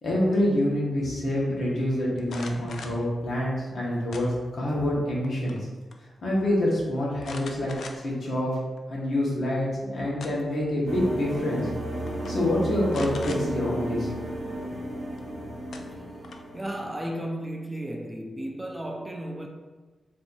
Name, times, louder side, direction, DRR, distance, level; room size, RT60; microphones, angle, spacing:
voice 1, 0.0-5.6 6.2-7.7 8.0-8.5 8.9-11.7 12.3-14.1, left 1 dB, 60° left, 1.1 m, -26 dB
sound 1, 2.2-3.0 4.1-4.7 5.1-5.6 5.9-6.0 7.2-8.2 8.8-8.9 9.9-10.6 11.6-11.8 12.1-12.3 12.9-13.4 15.2-15.3 15.7-16.6, left 4 dB, 80° left, 0.3 m, -41 dB
sound 2, 10.9-17.0, right 1 dB, 35° right, 0.9 m, -34 dB
voice 2, 16.5-19.5, right 1 dB, 10° right, 0.3 m, -34 dB
4.2 x 2.7 x 2.6 m
wide cardioid pair, 110°, 0 cm